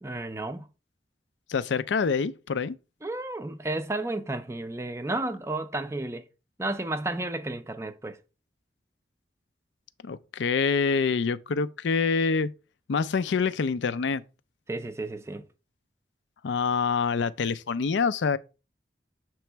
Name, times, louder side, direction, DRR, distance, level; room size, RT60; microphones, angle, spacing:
voice 1, 0.0-0.7 3.0-6.2 6.6-8.2 14.7-15.4, right 2 dB, 15° right, 0.4 m, -32 dB
voice 2, 1.5-2.8 10.0-12.5 12.9-14.2 16.4-18.4, left 5 dB, 85° left, 0.4 m, -26 dB
6.8 x 3.1 x 4.5 m
head